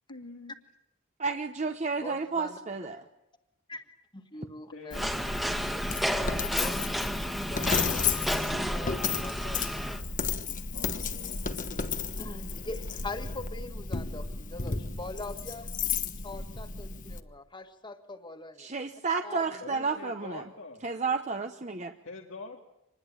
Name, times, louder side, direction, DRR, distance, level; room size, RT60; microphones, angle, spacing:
voice 1, 0.1-0.5 4.7-5.2 10.0-10.1 10.5-11.4 19.6-20.8 22.0-22.6, left 3 dB, 90° left, 1 dB, 2.4 m, -45 dB
voice 2, 1.2-3.0 18.6-20.4 20.8-21.9, right 4 dB, 35° right, 6 dB, 1.1 m, -31 dB
voice 3, 2.0-2.6 3.7-3.8 4.1-5.0 5.7-5.8 6.1-6.8 7.5-10.1 12.2-15.7 16.2-18.7 19.2-19.6, left 2 dB, 25° left, 7 dB, 1.8 m, -42 dB
Coin (dropping), 4.9-17.2, left 5 dB, 40° left, 1.3 m, -33 dB
sound 1, 4.9-10.0, equal, ahead, 1.5 m, -32 dB
26.0 x 20.5 x 9.0 m, 0.85 s
head